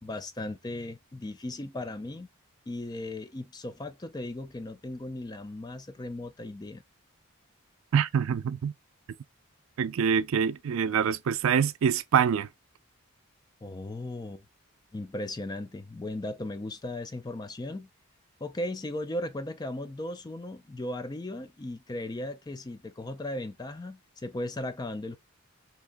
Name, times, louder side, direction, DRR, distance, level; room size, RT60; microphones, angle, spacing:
voice 1, 0.0-2.3 2.7-6.8 13.6-14.4 14.9-17.9 18.4-25.2, left 1 dB, 20° left, 0.3 m, -37 dB
voice 2, 7.9-8.7 9.8-12.5, right 7 dB, 70° right, 0.3 m, -25 dB
3.5 x 2.9 x 2.5 m
head